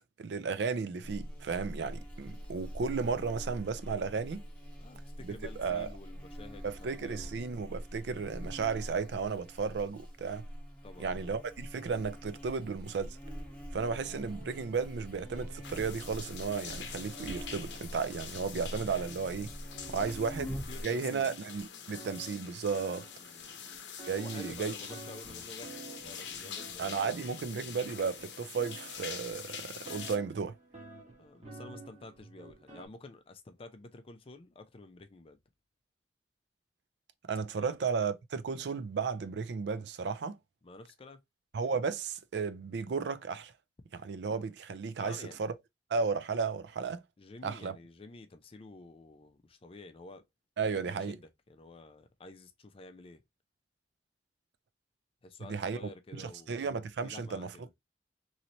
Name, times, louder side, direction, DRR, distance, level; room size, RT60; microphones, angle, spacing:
voice 1, 0.2-4.4 5.2-5.3 5.6-5.9 6.6-10.4 11.0-13.2 13.7-19.5 19.9-20.6 20.8-23.0 24.1-24.7 26.8-30.5 37.3-40.4 41.5-43.5 43.9-45.5 45.9-47.0 47.4-47.8 50.6-51.2 55.4-55.8 56.1-57.5, right 5 dB, 70° right, 0.4 m, -34 dB
Buzz, 1.0-20.8, equal, 5° left, 1.1 m, -44 dB
voice 2, 4.8-6.7 7.0-7.4 10.8-11.3 20.2-20.3 20.7-21.4 23.2-23.6 24.2-27.3 31.2-35.4 37.6-37.9 40.6-41.2 45.0-45.4 47.2-50.2 50.6-53.2 55.2-56.7 57.0-57.7, left 3 dB, 30° left, 0.4 m, -50 dB
sound 1, 13.2-18.8 19.4-19.5 19.7-32.9, right 3 dB, 35° right, 1.2 m, -52 dB
sound 2, 15.6-30.2, left 7 dB, 80° left, 0.6 m, -45 dB
3.1 x 2.7 x 2.9 m
head